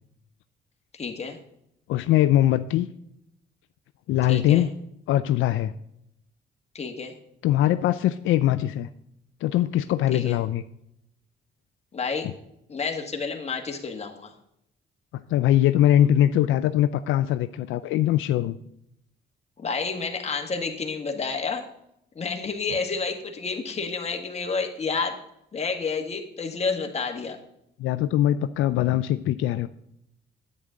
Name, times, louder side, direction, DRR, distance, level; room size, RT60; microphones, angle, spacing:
voice 1, 0.9-1.4 4.3-4.7 6.7-7.1 10.1-10.3 11.9-12.3 12.7-14.3 19.6-21.6 22.1-25.2 25.5-27.4, left 4 dB, 35° left, 3 dB, 1.7 m, -30 dB
voice 2, 1.9-2.9 4.1-4.7 5.1-5.7 7.4-8.9 9.4-10.6 15.3-18.6 27.8-29.7, left 12 dB, 80° left, 12 dB, 0.4 m, -22 dB
10.0 x 8.6 x 3.8 m, 0.78 s
cardioid pair, 90°, 20 cm